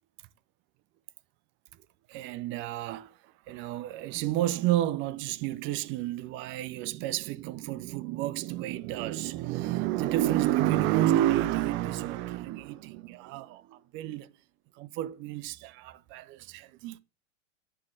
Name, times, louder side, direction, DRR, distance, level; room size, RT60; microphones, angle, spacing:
voice 1, 2.1-14.3 14.8-17.0, right 14 dB, 30° right, 0.5 m, -30 dB
9.8 x 3.6 x 6.4 m
hypercardioid pair, 100°, 40 cm